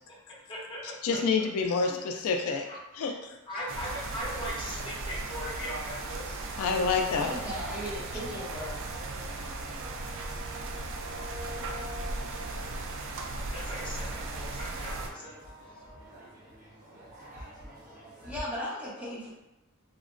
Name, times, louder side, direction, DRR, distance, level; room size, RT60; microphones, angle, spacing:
voice 1, 0.5-0.8 1.9-2.2 2.5-2.8 3.5-6.6 13.5-15.4, equal, 20° left, -6 dB, 0.8 m, -39 dB
voice 2, 1.0-2.7 2.9-3.4 6.6-7.4, left 4 dB, 70° left, 4 dB, 0.3 m, -28 dB
sound 1, 3.7-15.1, right 2 dB, 60° right, 0.3 m, -37 dB
voice 3, 7.1-8.7 18.2-19.3, equal, 5° right, -8 dB, 0.8 m, -37 dB
sound 2, 7.3-18.4, equal, 40° right, 0.8 m, -47 dB
3.7 x 2.1 x 2.4 m, 0.94 s
head